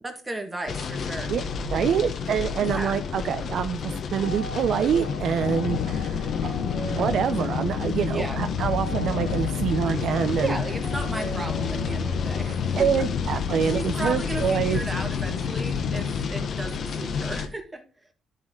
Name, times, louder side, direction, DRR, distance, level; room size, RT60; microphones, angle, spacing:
voice 1, 0.0-1.3 2.6-3.0 8.1-8.4 10.4-13.1 13.6-17.8, right 2 dB, 15° right, 4 dB, 1.7 m, -35 dB
sound 1, 0.7-17.5, left 5 dB, 60° left, 0.9 m, -31 dB
voice 2, 1.3-6.5 6.8-10.6 12.8-14.8, right 8 dB, 70° right, 10 dB, 0.5 m, -26 dB
sound 2, 4.2-13.0, right 3 dB, 90° right, 1.2 m, -40 dB
sound 3, 5.4-16.3, left 8 dB, 85° left, 0.5 m, -31 dB
11.5 x 4.2 x 3.7 m, 0.36 s
cardioid pair, 90°, 0 cm